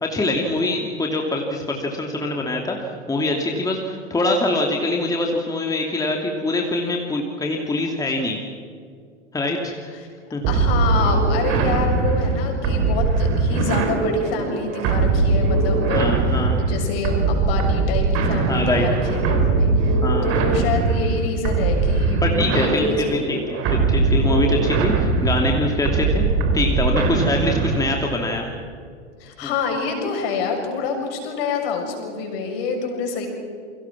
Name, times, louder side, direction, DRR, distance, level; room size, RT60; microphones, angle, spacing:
voice 1, 0.0-8.4 9.3-9.9 10.3-10.4 15.9-16.6 18.5-18.9 20.0-20.3 22.2-26.3 26.5-28.4 29.4-29.5, left 2 dB, 10° left, 1 dB, 2.8 m, -24 dB
sound 1, 10.4-28.1, right 4 dB, 40° right, 4.2 m, -21 dB
voice 2, 10.5-20.0 20.2-22.2 22.5-23.0 29.2-33.3, left 5 dB, 55° left, 3 dB, 7.0 m, -27 dB
sound 2, 20.6-21.1 21.7-22.1 22.7-23.3 24.9-25.5 26.0-26.5 27.1-27.6, left 4 dB, 30° left, 5.3 m, -42 dB
29.0 x 24.0 x 6.1 m, 2.2 s
figure-of-eight pair, 95°, 36 cm